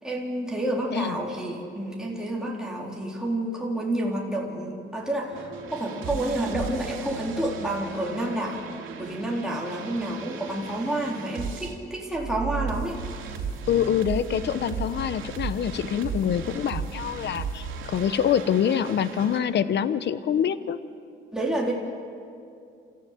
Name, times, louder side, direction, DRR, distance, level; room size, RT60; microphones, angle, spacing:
voice 1, 0.0-8.7 9.0-13.3 21.3-21.7, right 1 dB, 5° right, -3 dB, 3.8 m, -29 dB
sound 1, 5.3-11.7 12.1-19.4, right 6 dB, 80° right, 2.9 m, -36 dB
voice 2, 13.7-20.8, left 9 dB, 60° left, 14 dB, 1.0 m, -25 dB
27.5 x 14.5 x 9.1 m, 2.5 s
cardioid pair, 90°, 20 cm